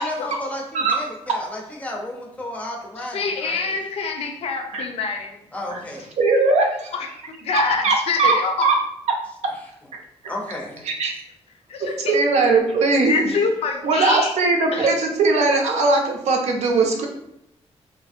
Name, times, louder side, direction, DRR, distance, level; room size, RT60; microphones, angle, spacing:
voice 1, 0.0-3.8 5.5-6.1 9.5-9.9 10.3-10.8, left 1 dB, 15° left, -1 dB, 0.5 m, -33 dB
voice 2, 3.1-5.3 6.9-7.1 7.4-8.7 11.7-12.2 13.1-14.4 14.7-14.9, left 4 dB, 60° left, 4 dB, 0.4 m, -25 dB
voice 3, 6.2-6.9 7.5-8.4 8.6-8.8 9.9-10.0 10.9-11.2 11.8-13.3 13.8-17.1, right 3 dB, 80° right, 2 dB, 0.6 m, -19 dB
2.7 x 2.5 x 2.4 m, 0.79 s
wide cardioid pair, 165°, 11 cm